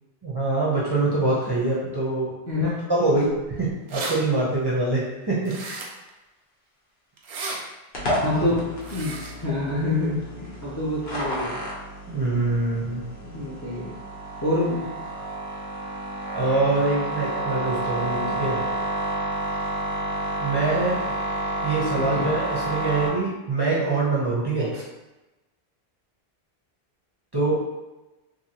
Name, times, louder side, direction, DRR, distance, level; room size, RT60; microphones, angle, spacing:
voice 1, 0.2-2.3 2.9-3.3 3.6-5.8 12.1-13.0 16.3-18.6 20.4-21.0 21.6-24.7 27.3-27.6, right 2 dB, 30° right, -7 dB, 0.5 m, -24 dB
voice 2, 2.5-2.9 8.2-9.2 9.4-11.6 13.2-14.0 14.4-14.9 21.9-22.3 24.6-24.8, left 2 dB, 25° left, -6 dB, 0.4 m, -27 dB
sound 1, 3.4-3.5 3.7-4.2 5.4-6.1 7.2-7.6 8.8-9.3, right 3 dB, 80° right, 0.8 m, -33 dB
sound 2, 7.9-23.1, right 1 dB, 70° left, 1.0 m, -30 dB
2.8 x 2.6 x 2.7 m, 1.1 s
omnidirectional pair, 1.1 m